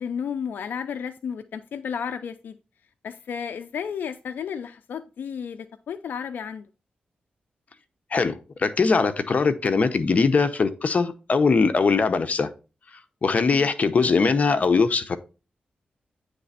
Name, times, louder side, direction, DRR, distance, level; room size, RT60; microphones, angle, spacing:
voice 1, 0.0-2.6 3.0-6.7 13.4-13.7, left 7 dB, 85° left, 0.4 m, -33 dB
voice 2, 8.1-12.5 13.2-15.2, left 4 dB, 50° left, 0.8 m, -21 dB
9.3 x 3.3 x 4.1 m
cardioid pair, 85°, 3 cm